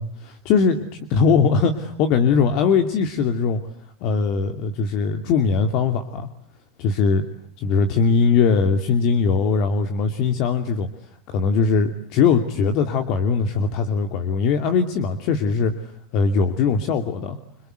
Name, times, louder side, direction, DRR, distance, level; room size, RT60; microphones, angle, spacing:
voice 1, 0.0-3.6 4.0-6.3 6.8-7.2 7.6-10.9 11.3-17.4, left 5 dB, 55° left, 7 dB, 2.6 m, -20 dB
27.0 x 26.0 x 8.0 m, 0.65 s
hypercardioid pair, 95°, 0 cm